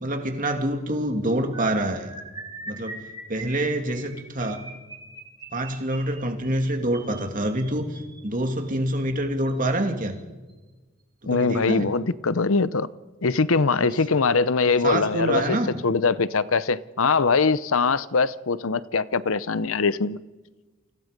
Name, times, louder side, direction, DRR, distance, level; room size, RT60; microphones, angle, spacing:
voice 1, 0.0-2.1 2.7-3.0 3.3-4.7 5.5-10.1 11.3-11.9 13.7-13.9 14.8-15.8, right 1 dB, 40° right, 2.8 m, -26 dB
sound 1, 1.5-8.7 9.5-9.7 10.0-10.2 10.5-10.7, right 2 dB, 20° right, 3.5 m, -42 dB
voice 2, 11.3-12.9 13.2-15.6 15.8-20.2, left 4 dB, 70° left, 0.8 m, -22 dB
29.5 x 26.0 x 5.3 m
head